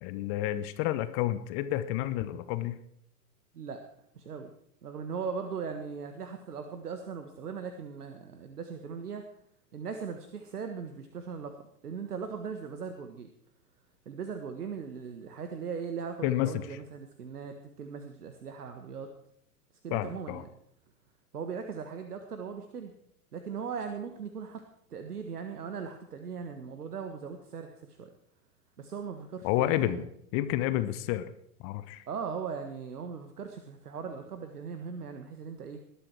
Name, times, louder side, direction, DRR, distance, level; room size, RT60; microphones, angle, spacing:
voice 1, 0.0-2.8 16.2-16.8 19.9-20.4 29.4-31.3 31.6-32.0, left 13 dB, 30° left, 13 dB, 0.9 m, -30 dB
voice 2, 4.1-4.5 4.8-9.2 9.7-13.3 14.0-19.1 19.8-20.5 21.3-22.9 23.3-24.6 24.9-28.1 28.8-30.0 32.1-35.8, right 6 dB, 70° right, 6 dB, 1.6 m, -39 dB
20.5 x 12.0 x 4.7 m, 0.72 s
figure-of-eight pair, 100°, 48 cm